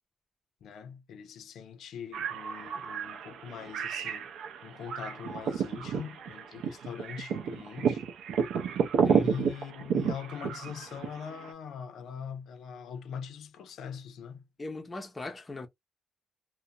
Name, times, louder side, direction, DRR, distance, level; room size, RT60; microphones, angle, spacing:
voice 1, 0.6-4.3 4.6-8.0 9.2-14.4, left 7 dB, 65° left, 0.5 m, -42 dB
sound 1, 2.1-11.5, right 7 dB, 75° right, 0.5 m, -31 dB
voice 2, 9.0-9.4 14.6-15.7, left 2 dB, 15° left, 0.5 m, -38 dB
2.4 x 2.1 x 2.7 m
cardioid pair, 175°, 0 cm